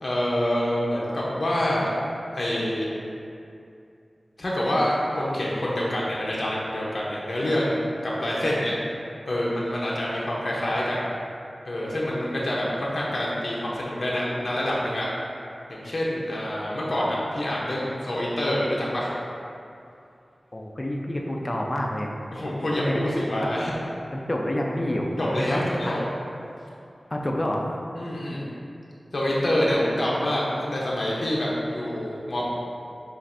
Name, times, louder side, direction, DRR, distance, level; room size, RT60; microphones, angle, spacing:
voice 1, 0.0-1.9 2.3-2.9 4.4-8.7 9.3-11.1 11.6-15.1 15.7-19.1 22.3-23.7 25.2-26.0 27.9-28.4 29.1-32.5, left 1 dB, 65° left, -5 dB, 0.7 m, -26 dB
voice 2, 20.5-22.1 22.7-23.1 23.4-23.5 24.1-25.9 27.1-27.8, left 1 dB, 30° left, 0 dB, 0.4 m, -28 dB
7.1 x 2.5 x 2.6 m, 2.6 s
wide cardioid pair, 75°, 0 cm